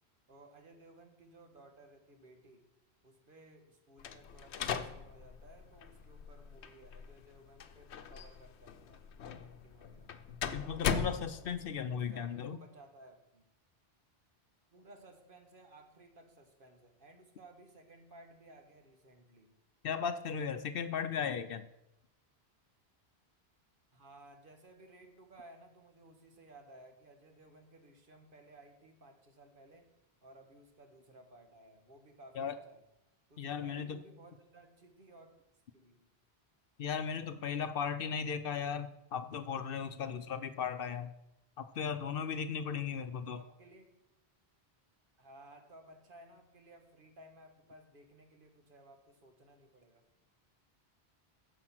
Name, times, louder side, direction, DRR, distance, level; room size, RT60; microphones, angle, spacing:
voice 1, 0.3-2.7 3.0-9.1 9.4-10.2 11.8-13.4 14.7-19.6 23.9-32.8 33.3-35.3 35.7-36.1 43.3-44.0 45.2-50.0, right 1 dB, 55° right, 5 dB, 1.5 m, -58 dB
sound 1, 4.0-11.8, left 6 dB, 90° left, 1.0 m, -39 dB
voice 2, 10.5-12.6 19.8-21.7 32.4-32.5 33.4-34.0 36.8-41.1 41.6-43.4, left 7 dB, 65° left, 11 dB, 0.8 m, -36 dB
14.0 x 5.1 x 5.9 m, 0.89 s
omnidirectional pair, 1.1 m